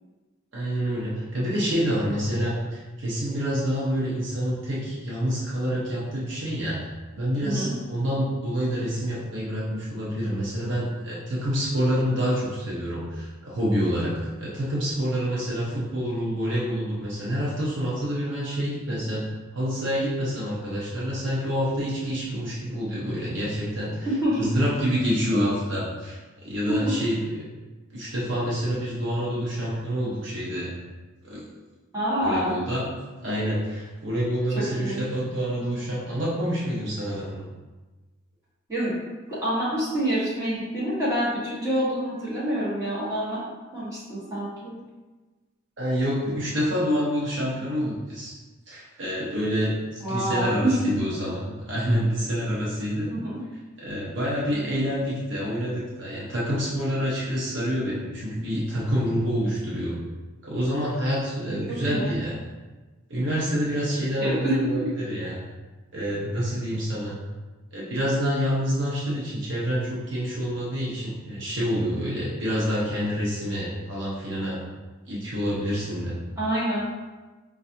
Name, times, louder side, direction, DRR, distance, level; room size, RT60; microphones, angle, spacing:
voice 1, 0.5-6.9 7.1-19.3 19.5-24.1 24.4-27.5 27.9-30.7 31.2-31.4 32.2-32.9 33.2-37.5 45.8-48.3 48.7-53.1 53.8-60.0 60.4-62.4 63.1-65.4 65.9-67.2 67.7-74.6 75.1-76.2, equal, 60° right, -6 dB, 0.7 m, -27 dB
voice 2, 7.4-7.7 24.0-24.4 26.7-26.8 31.9-32.5 34.5-35.0 38.7-38.9 39.4-43.4 43.7-44.7 50.0-50.8 53.1-53.4 61.7-62.1 64.2-64.7 76.4-76.9, right 1 dB, 15° right, -10 dB, 1.4 m, -27 dB
5.2 x 2.4 x 2.7 m, 1.2 s
head